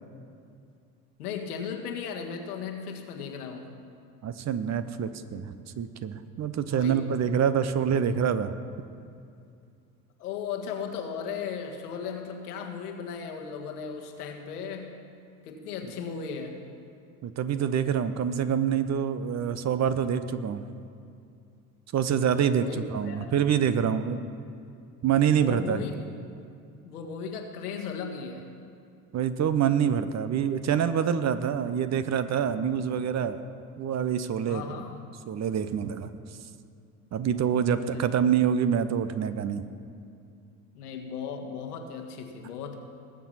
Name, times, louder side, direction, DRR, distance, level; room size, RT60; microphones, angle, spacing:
voice 1, 1.2-3.7 6.7-7.2 10.2-15.0 15.4-16.6 22.5-23.3 24.2-24.3 25.3-25.9 26.8-28.5 34.5-35.0 37.8-38.1 40.7-42.8, left 6 dB, 75° left, 3 dB, 1.6 m, -36 dB
voice 2, 4.2-8.5 17.2-20.6 21.9-22.6 22.9-24.2 25.0-25.8 29.1-33.4 33.8-34.8 35.3-36.1 37.1-39.6, right 8 dB, 35° right, 12 dB, 0.9 m, -26 dB
20.0 x 7.5 x 5.8 m, 2.5 s
figure-of-eight pair, 65°, 46 cm